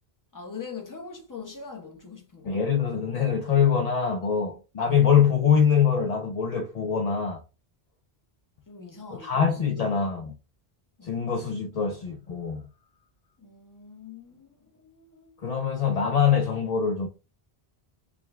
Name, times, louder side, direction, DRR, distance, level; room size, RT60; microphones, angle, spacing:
voice 1, 0.3-2.6 8.7-10.0 11.0-11.2 13.4-15.4, left 5 dB, 20° left, 0.8 m, -43 dB
voice 2, 2.4-7.4 9.1-10.3 11.0-12.6 15.4-17.1, left 7 dB, 55° left, 0.5 m, -24 dB
4.8 x 2.2 x 3.3 m
omnidirectional pair, 1.1 m